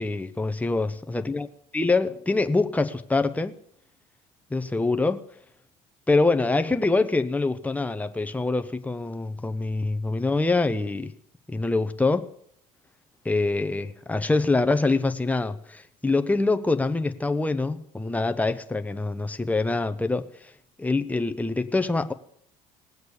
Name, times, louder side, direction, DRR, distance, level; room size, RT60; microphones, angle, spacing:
voice 1, 0.0-1.5 1.7-3.5 4.5-5.2 6.1-11.1 11.5-12.3 13.2-20.3 20.8-22.1, left 3 dB, 10° left, 0.9 m, -25 dB
18.5 x 8.0 x 7.0 m
hypercardioid pair, 60°, 19 cm